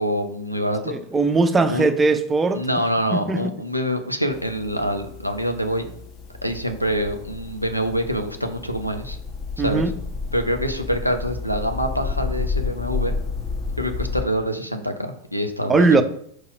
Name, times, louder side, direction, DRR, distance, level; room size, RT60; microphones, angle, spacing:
voice 1, 0.0-1.0 1.7-1.9 2.5-5.9 6.4-9.2 9.6-9.9 10.3-13.2 13.8-16.0, equal, 90° left, 0.7 m, -25 dB
voice 2, 0.9-2.6 3.1-3.4 9.6-9.9 15.7-16.0, right 3 dB, 15° right, 0.5 m, -19 dB
sound 1, 4.3-14.2, left 4 dB, 35° left, 0.9 m, -31 dB
4.7 x 4.2 x 4.8 m
figure-of-eight pair, 90°, 0 cm